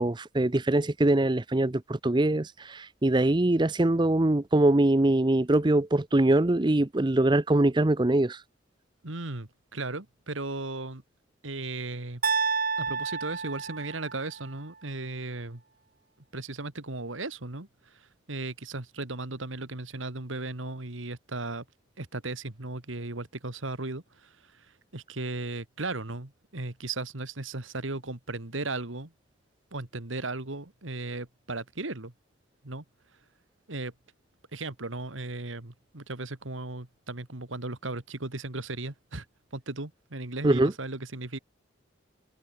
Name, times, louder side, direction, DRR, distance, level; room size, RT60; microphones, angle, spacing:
voice 1, 0.0-8.4 40.4-40.7, right 1 dB, 20° right, 0.6 m, -23 dB
voice 2, 9.0-11.0 11.4-12.2 12.8-15.6 16.3-21.6 22.0-24.7 24.9-29.1 29.7-32.1 32.6-32.8 33.7-33.9 34.5-39.3 39.5-41.4, right 2 dB, 80° right, 2.2 m, -36 dB
sound 1, 12.2-14.4, right 5 dB, 45° right, 3.3 m, -29 dB
head